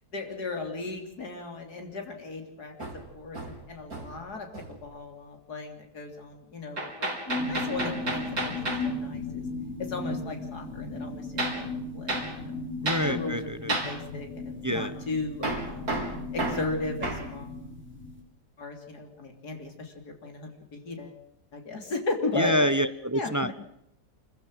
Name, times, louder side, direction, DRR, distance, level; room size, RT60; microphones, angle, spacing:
voice 1, 0.1-7.1 7.5-9.4 9.9-12.6 13.0-15.9 16.3-17.5 18.6-21.2 21.5-22.7 23.1-23.5, left 3 dB, 70° left, 3 dB, 3.8 m, -36 dB
Hammer, 2.8-4.2 4.5-4.9 6.8-8.9 11.4-11.6 12.1-12.3 12.9-13.1 13.7-13.9 15.4-17.3, right 2 dB, 60° right, 4.7 m, -32 dB
sound 1, 7.3-18.2, left 2 dB, 5° left, 6.3 m, -36 dB
voice 2, 12.8-13.8 14.6-14.9 22.3-23.5, equal, 15° right, 11 dB, 0.7 m, -27 dB
26.0 x 15.0 x 7.7 m, 0.79 s
omnidirectional pair, 1.7 m